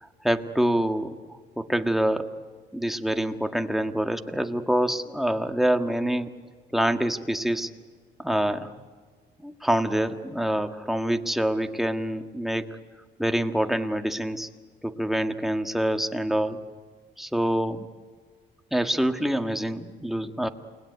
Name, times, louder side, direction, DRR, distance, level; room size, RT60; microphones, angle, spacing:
voice 1, 0.2-1.2 1.6-2.3 2.7-6.3 6.7-7.7 8.2-8.7 9.4-12.8 13.2-14.5 14.8-16.6 17.2-17.9 18.7-20.5, right 1 dB, ahead, 6 dB, 1.7 m, -26 dB
29.0 x 20.5 x 9.6 m, 1.5 s
cardioid pair, 90°, 20 cm